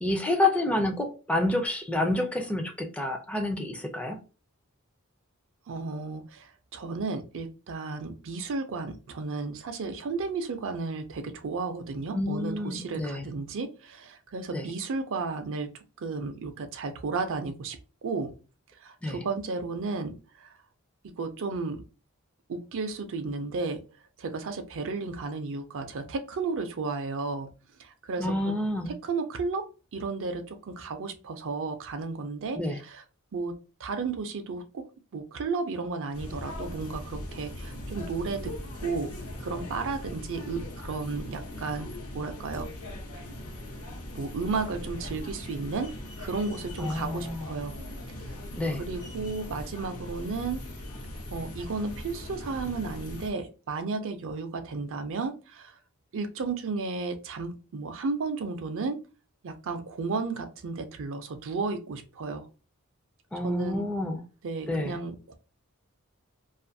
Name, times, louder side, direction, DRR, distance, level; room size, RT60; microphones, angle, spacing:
voice 1, 0.0-4.2 12.1-13.3 14.5-14.7 19.0-19.2 28.2-28.9 32.5-32.8 46.8-47.5 48.6-48.8 63.3-64.2 64.7-65.0, left 2 dB, 5° left, 0.4 m, -28 dB
voice 2, 5.7-15.7 16.0-18.3 18.8-20.5 21.2-21.8 22.5-23.8 24.2-27.5 27.8-28.5 28.9-33.0 33.3-34.8 35.1-38.5 38.8-39.1 39.4-41.9 42.1-42.7 44.1-45.9 46.2-47.8 48.2-48.4 48.8-50.6 51.3-55.8 56.1-59.0 59.4-62.5 63.4-63.9 64.4-65.4, right 4 dB, 60° right, 0.5 m, -33 dB
sound 1, 36.1-53.3, left 1 dB, 85° left, 0.9 m, -40 dB
2.5 x 2.4 x 2.6 m
head